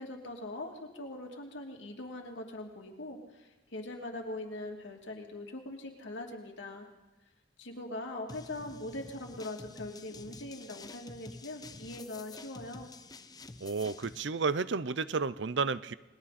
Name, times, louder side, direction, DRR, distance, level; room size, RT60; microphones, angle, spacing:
voice 1, 0.0-6.9 7.6-12.9, left 2 dB, 80° left, 1 dB, 2.8 m, -42 dB
sound 1, 8.3-14.2, left 3 dB, 20° left, 0.8 m, -49 dB
voice 2, 13.6-15.9, right 4 dB, 75° right, 16 dB, 0.6 m, -31 dB
29.0 x 20.5 x 4.3 m, 1.2 s
head